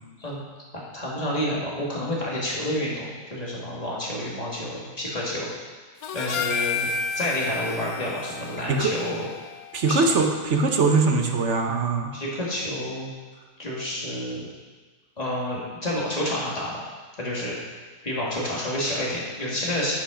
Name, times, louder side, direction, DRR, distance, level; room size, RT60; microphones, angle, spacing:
voice 1, 0.7-5.5 6.1-9.3 9.9-10.1 12.1-13.1 13.6-14.5 15.2-16.8 17.2-17.5 18.0-19.9, left 1 dB, 25° left, -5 dB, 2.0 m, -29 dB
Harmonica, 6.0-10.5, left 5 dB, 70° left, 1.0 m, -32 dB
voice 2, 9.7-12.1, right 4 dB, 50° right, 3 dB, 1.1 m, -22 dB
10.5 x 5.5 x 5.0 m, 1.4 s
omnidirectional pair, 1.7 m